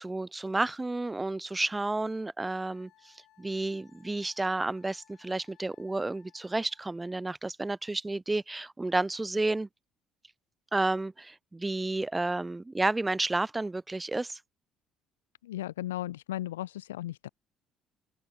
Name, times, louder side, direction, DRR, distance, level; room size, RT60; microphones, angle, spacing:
voice 1, 0.0-9.7 10.7-14.4, right 2 dB, 20° right, 0.5 m, -31 dB
Wind instrument woodwind instrument, 2.5-6.9, left 15 dB, 65° left, 2.0 m, -64 dB
voice 2, 15.4-17.3, left 14 dB, 85° left, 0.4 m, -36 dB
open air
hypercardioid pair, 50°, 0 cm